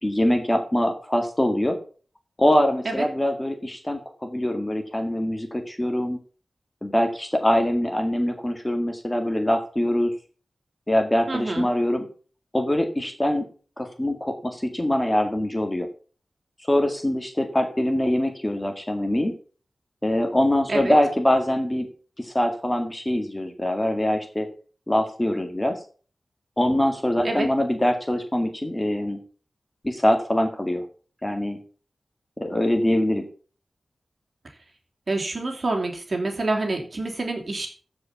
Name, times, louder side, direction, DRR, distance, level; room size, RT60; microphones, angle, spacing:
voice 1, 0.0-1.8 2.4-6.2 6.8-10.1 10.9-12.1 12.5-13.5 13.8-15.9 16.6-19.3 20.0-21.9 22.2-24.5 24.9-25.8 26.6-29.2 29.8-30.8 31.2-31.6 32.4-33.3, left 1 dB, 15° left, 5 dB, 1.9 m, -23 dB
voice 2, 11.3-11.7 20.7-20.9 27.2-27.5 35.1-37.7, right 2 dB, 50° right, 2 dB, 2.9 m, -27 dB
14.5 x 5.3 x 5.8 m, 0.40 s
wide cardioid pair, 105°, 0 cm